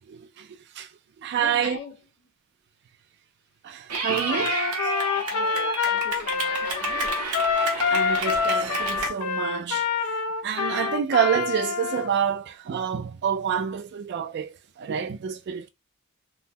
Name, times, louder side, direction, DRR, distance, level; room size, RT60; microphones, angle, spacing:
voice 1, 0.1-0.5 0.8-0.9 1.2-1.8 3.6-4.6 7.9-9.8 10.4-15.7, right 8 dB, 50° right, 0.3 m, -27 dB
voice 2, 1.3-2.0 5.1-7.3, left 4 dB, 55° left, 1.3 m, -41 dB
Clapping / Cheering, 3.9-9.1, right 3 dB, 75° right, 0.9 m, -30 dB
Trumpet, 4.3-12.1, left 6 dB, 85° left, 0.5 m, -26 dB
3.7 x 2.0 x 2.7 m
head